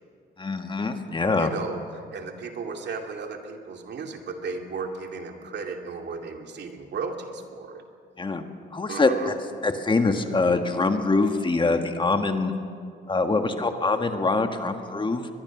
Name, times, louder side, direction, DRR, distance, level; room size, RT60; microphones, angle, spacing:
voice 1, 0.4-1.5 8.2-8.4 8.7-9.3 9.6-12.5 13.1-15.3, left 3 dB, 25° left, 6 dB, 1.6 m, -24 dB
voice 2, 1.4-7.8 8.9-9.3, right 4 dB, 60° right, 3 dB, 2.5 m, -35 dB
22.0 x 21.0 x 6.1 m, 2.2 s
cardioid pair, 90°, 20 cm